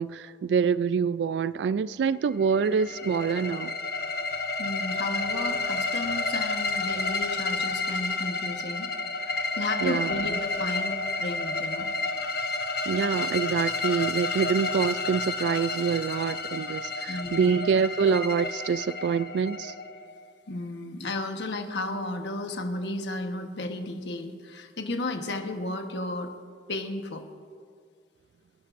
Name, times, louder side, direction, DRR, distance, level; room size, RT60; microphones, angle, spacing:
voice 1, 0.0-3.7 9.8-10.2 12.9-19.7, right 6 dB, 80° right, 0.3 m, -26 dB
sound 1, 2.4-20.2, left 3 dB, 60° left, 1.0 m, -31 dB
voice 2, 4.6-8.9 9.2-11.9 17.1-17.5 20.5-26.3 26.7-27.2, left 2 dB, 80° left, 1.2 m, -33 dB
29.0 x 11.5 x 2.6 m
head